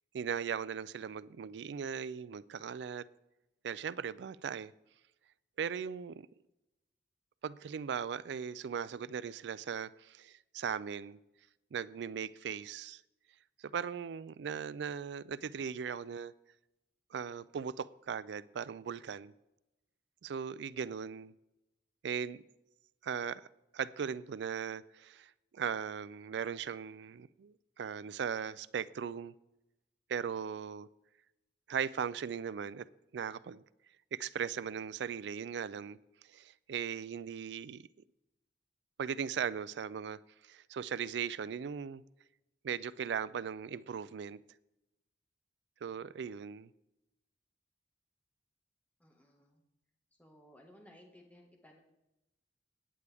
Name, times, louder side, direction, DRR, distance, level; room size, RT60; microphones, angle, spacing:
voice 1, 0.1-3.1 3.6-4.7 5.6-6.3 7.4-11.2 11.7-13.0 13.6-16.3 17.1-19.3 20.2-21.3 22.0-22.4 23.0-23.4 23.7-29.3 30.1-30.9 31.7-32.9 33.1-33.6 34.1-36.0 36.3-37.9 39.0-40.2 40.5-42.0 42.6-44.4 45.8-46.7, right 7 dB, 70° right, 0.3 m, -38 dB
voice 2, 49.0-49.6 50.2-51.8, left 1 dB, 10° left, 1.6 m, -59 dB
18.0 x 8.2 x 3.5 m
head